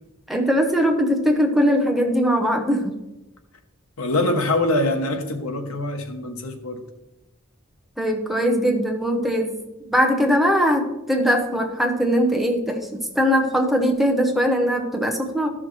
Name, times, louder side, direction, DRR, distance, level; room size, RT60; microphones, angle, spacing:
voice 1, 0.3-3.0 8.0-9.5 9.8-15.5, equal, ahead, 2 dB, 0.9 m, -21 dB
voice 2, 4.0-6.8, left 2 dB, 85° left, 6 dB, 1.1 m, -24 dB
13.5 x 6.1 x 3.2 m, 0.98 s
head